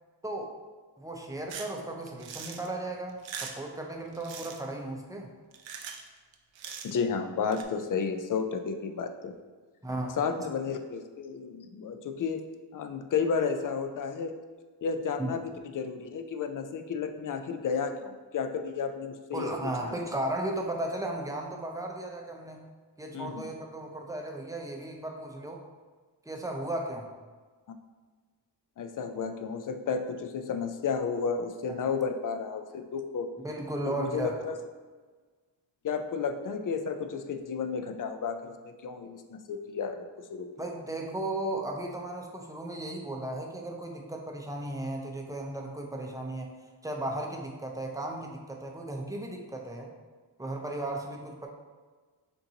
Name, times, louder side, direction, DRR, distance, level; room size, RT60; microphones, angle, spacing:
voice 1, 0.2-0.5 1.0-5.3 9.8-10.2 15.2-15.3 19.3-22.7 23.0-25.6 26.2-27.1 31.8-31.9 33.4-34.4 40.6-46.5 46.8-49.9 50.4-51.5, right 1 dB, 10° right, 1 dB, 0.6 m, -35 dB
sound 1, 1.5-1.7 2.1-2.7 3.1-3.7 4.1-4.6 5.5-6.1 6.3-7.0 7.5-7.6, right 6 dB, 80° right, 0.6 m, -41 dB
voice 2, 6.8-9.3 10.2-12.4 12.7-14.3 14.8-20.0 23.1-23.4 28.8-33.3 33.8-34.6 35.8-40.5, left 5 dB, 45° left, 7 dB, 0.5 m, -32 dB
6.9 x 2.6 x 2.8 m, 1.4 s
cardioid pair, 80°, 44 cm